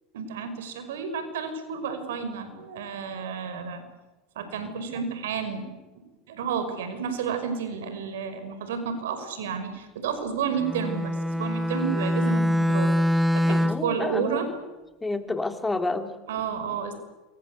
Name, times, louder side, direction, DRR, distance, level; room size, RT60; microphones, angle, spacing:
voice 1, 0.1-3.8 4.4-14.5 16.3-16.9, right 6 dB, 80° right, 9 dB, 5.6 m, -31 dB
Bowed string instrument, 10.6-14.0, equal, 5° right, 0.9 m, -24 dB
voice 2, 13.5-14.5 15.0-16.2, left 2 dB, 10° left, 7 dB, 3.0 m, -29 dB
27.5 x 24.0 x 8.4 m, 1.1 s
hypercardioid pair, 95°, 0 cm